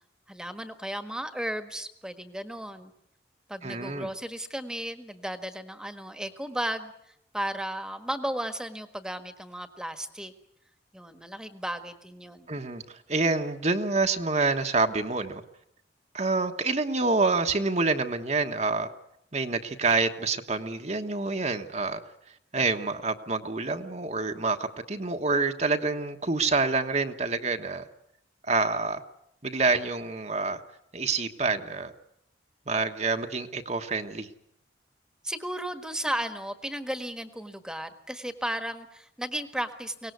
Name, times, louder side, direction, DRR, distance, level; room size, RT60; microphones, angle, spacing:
voice 1, 0.3-2.9 3.5-6.9 7.3-10.3 10.9-12.5 35.2-40.1, right 1 dB, 5° right, 9 dB, 1.5 m, -34 dB
voice 2, 3.6-4.1 12.5-15.4 16.1-18.9 19.3-22.0 22.5-27.9 28.4-29.0 29.4-30.6 30.9-31.9 32.7-34.3, right 3 dB, 35° right, 6 dB, 1.3 m, -27 dB
23.5 x 19.0 x 9.5 m, 0.77 s
head